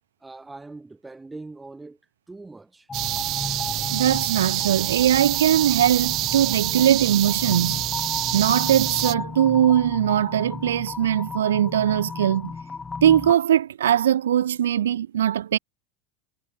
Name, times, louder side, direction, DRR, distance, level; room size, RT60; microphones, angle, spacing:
voice 1, 0.2-2.0 2.3-2.9, right 3 dB, 15° right, 1.5 m, -41 dB
sound 1, 2.9-13.3, left 4 dB, 20° left, 1.0 m, -34 dB
sound 2, 2.9-9.1, right 17 dB, 55° right, 0.8 m, -27 dB
voice 2, 3.9-7.9 8.3-12.5 13.0-15.6, right 10 dB, 85° right, 0.3 m, -21 dB
hypercardioid pair, 90°, 0 cm